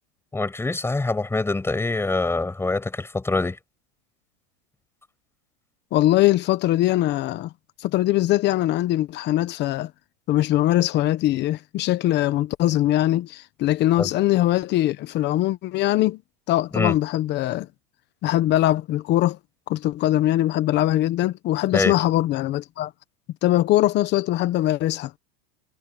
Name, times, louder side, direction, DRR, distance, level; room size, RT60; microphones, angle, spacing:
voice 1, 0.3-3.6 14.0-14.1 16.7-17.0 21.7-21.9, left 3 dB, 5° left, 8.0 m, -24 dB
voice 2, 5.9-7.5 7.8-9.9 10.3-16.2 16.5-17.7 18.2-19.4 19.7-22.9 23.4-25.1, left 15 dB, 30° left, 1.1 m, -21 dB
supercardioid pair, 150°, 33 cm